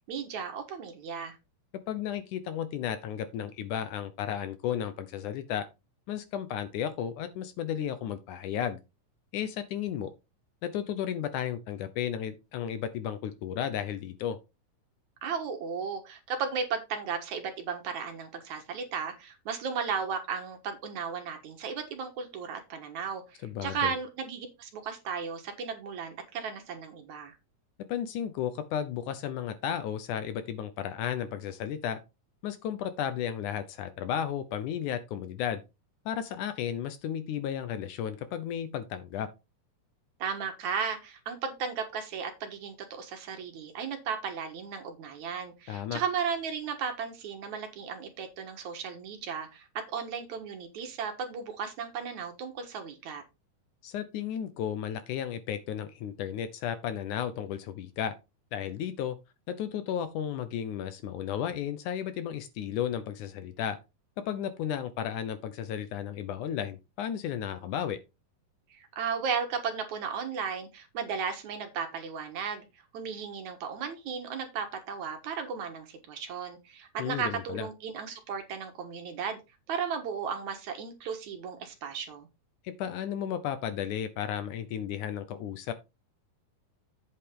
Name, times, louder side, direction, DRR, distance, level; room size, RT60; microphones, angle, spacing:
voice 1, 0.1-1.4 15.2-23.2 23.6-27.3 40.2-49.7 49.9-53.2 68.7-72.7 72.9-79.4 79.7-82.3, right 6 dB, 65° right, 2.5 m, -35 dB
voice 2, 1.9-5.7 6.1-8.8 9.3-10.1 10.6-14.4 23.4-23.9 27.9-32.0 32.4-35.6 36.1-39.3 45.7-46.0 53.8-58.2 58.5-59.2 59.5-63.8 64.3-68.0 77.0-77.7 82.6-85.7, left 9 dB, 70° left, 2.2 m, -33 dB
8.5 x 7.3 x 3.7 m
omnidirectional pair, 3.9 m